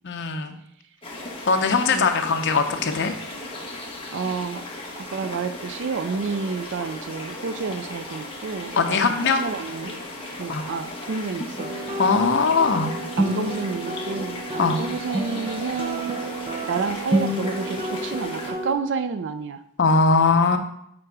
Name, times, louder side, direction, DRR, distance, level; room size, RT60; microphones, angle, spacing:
voice 1, 0.0-0.6 1.5-3.1 8.8-9.4 10.5-10.6 12.0-12.9 14.6-14.8 19.8-20.6, left 4 dB, 55° left, 5 dB, 0.7 m, -20 dB
sound 1, 1.0-18.5, left 2 dB, 25° left, 1.3 m, -36 dB
voice 2, 4.1-4.7 5.0-10.0 10.3-11.8 12.7-12.8 13.2-16.2 16.7-19.6, right 5 dB, 60° right, 11 dB, 0.4 m, -30 dB
sound 2, 11.6-18.7, right 1 dB, 25° right, 0.7 m, -29 dB
7.6 x 3.8 x 4.7 m, 0.75 s
head